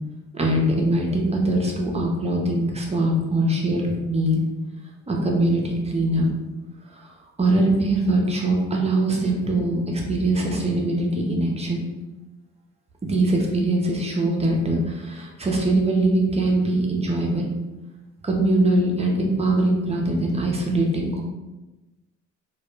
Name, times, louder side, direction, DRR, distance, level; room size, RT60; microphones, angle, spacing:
voice 1, 0.3-4.4 5.1-6.3 6.9-7.0 7.4-11.8 13.0-17.5 18.2-21.2, right 1 dB, 20° right, -1 dB, 0.5 m, -22 dB
2.2 x 2.1 x 3.0 m, 1.1 s
cardioid pair, 90°, 30 cm